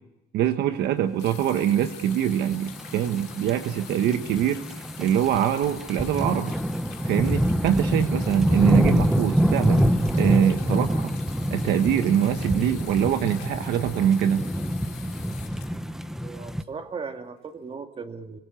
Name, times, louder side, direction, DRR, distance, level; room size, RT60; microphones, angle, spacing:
voice 1, 0.3-6.5 7.1-11.1 11.5-14.4, right 10 dB, 75° right, 7 dB, 1.3 m, -24 dB
sound 1, 1.2-16.6 17.5-17.6, left 12 dB, 85° left, 2.8 m, -45 dB
sound 2, 2.3-16.6, equal, 5° right, 1.1 m, -26 dB
voice 2, 16.2-18.4, right 5 dB, 35° right, 6 dB, 2.1 m, -37 dB
25.5 x 22.0 x 6.9 m, 0.96 s
cardioid pair, 110°, 17 cm